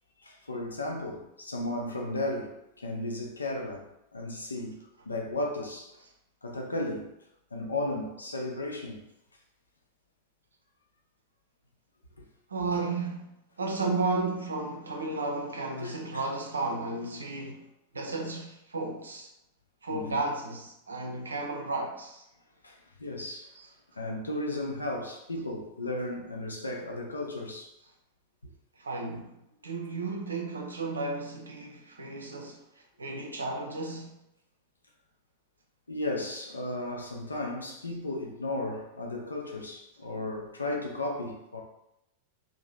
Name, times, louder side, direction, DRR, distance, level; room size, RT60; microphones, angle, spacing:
voice 1, 0.2-5.9 6.4-7.1 7.5-9.0 12.2-12.3 15.8-16.2 19.9-20.2 22.6-23.5 24.0-27.7 28.4-28.5 35.9-41.6, left 2 dB, 80° left, 0.5 m, -35 dB
voice 2, 12.5-17.7 17.9-19.3 19.8-22.3 23.6-23.7 28.8-34.2, right 3 dB, 75° right, 0.5 m, -33 dB
2.7 x 2.1 x 3.3 m
figure-of-eight pair, 90°, 0 cm